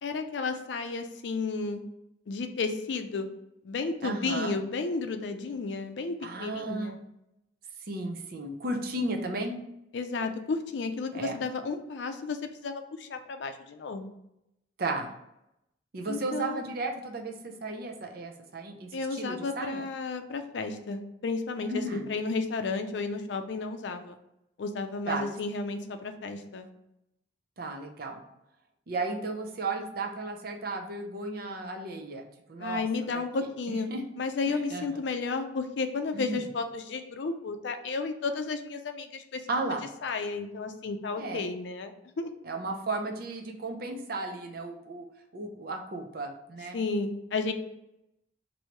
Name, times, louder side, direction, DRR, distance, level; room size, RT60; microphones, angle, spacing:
voice 1, 0.0-1.8 2.3-3.3 3.6-7.0 9.9-14.1 16.1-16.6 18.9-24.1 24.6-26.7 32.6-33.9 34.2-39.4 40.0-42.3 46.7-47.5, left 4 dB, 70° left, 7 dB, 0.4 m, -33 dB
voice 2, 4.0-4.6 6.2-7.0 7.9-9.6 11.1-11.4 14.8-15.1 15.9-19.9 21.7-22.1 25.1-25.3 27.6-28.2 28.9-32.8 33.1-33.2 33.7-34.0 34.5-35.0 36.1-36.4 39.5-39.8 41.2-41.4 42.4-45.1 45.3-46.8, right 2 dB, 55° right, 3 dB, 0.5 m, -34 dB
2.9 x 2.7 x 4.4 m, 0.84 s
head